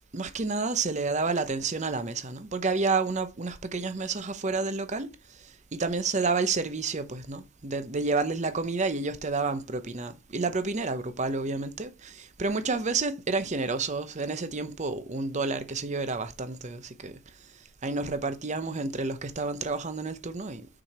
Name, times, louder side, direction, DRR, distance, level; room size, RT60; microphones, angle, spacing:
voice 1, 0.1-17.2 17.8-20.7, right 4 dB, 35° right, 0.7 m, -30 dB
6.3 x 4.8 x 4.2 m
head